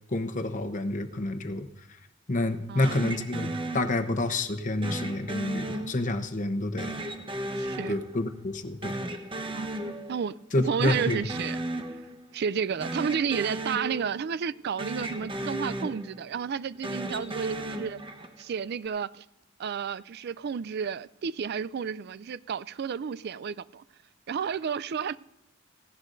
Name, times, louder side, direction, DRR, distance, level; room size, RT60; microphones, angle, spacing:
voice 1, 0.1-1.7 2.3-7.0 7.9-9.0 10.5-11.2, left 2 dB, 40° left, 1.0 m, -28 dB
sound 1, 2.8-4.3 4.8-6.4 6.8-8.6 8.8-10.4 10.6-12.3 12.7-14.5 14.8-16.4 16.8-18.5, right 1 dB, 25° right, 1.1 m, -35 dB
voice 2, 7.6-8.0 9.5-9.8 10.1-10.4 10.7-11.6 12.3-18.0 18.4-19.2 19.6-23.8 24.3-25.2, right 7 dB, 55° right, 0.4 m, -31 dB
17.5 x 16.5 x 2.7 m
head